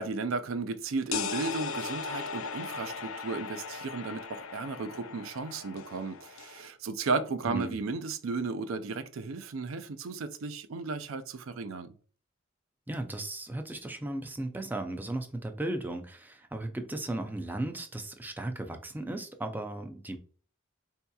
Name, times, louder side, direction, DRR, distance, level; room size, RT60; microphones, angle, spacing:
voice 1, 0.0-11.9, right 4 dB, 80° right, 0.4 m, -34 dB
sound 1, 1.1-6.7, left 5 dB, 75° left, 0.4 m, -38 dB
voice 2, 7.5-7.8 12.9-20.2, right 1 dB, 10° right, 0.4 m, -36 dB
4.4 x 2.8 x 2.3 m
head